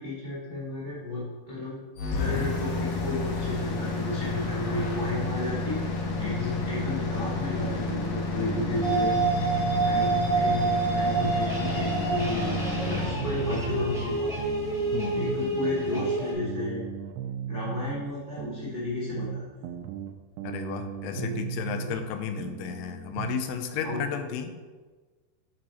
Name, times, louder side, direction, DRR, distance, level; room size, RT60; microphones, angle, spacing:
voice 1, 0.0-5.8 6.2-14.3 15.1-16.8 17.5-19.4 21.1-21.4 21.8-21.9 23.8-24.1, left 2 dB, 65° right, -9 dB, 0.6 m, -33 dB
sound 1, 2.0-15.9, left 3 dB, 65° left, 2.2 m, -31 dB
sound 2, 7.6-10.1 10.4-14.1 14.4-18.1 18.4-22.1 22.4-23.5, right 9 dB, 90° right, 2.7 m, -37 dB
sound 3, 8.8-16.3, right 4 dB, 5° right, 0.5 m, -28 dB
voice 2, 14.9-15.6 20.4-24.6, left 8 dB, 85° left, 7 dB, 2.7 m, -33 dB
8.8 x 4.6 x 4.2 m, 1.4 s
omnidirectional pair, 4.7 m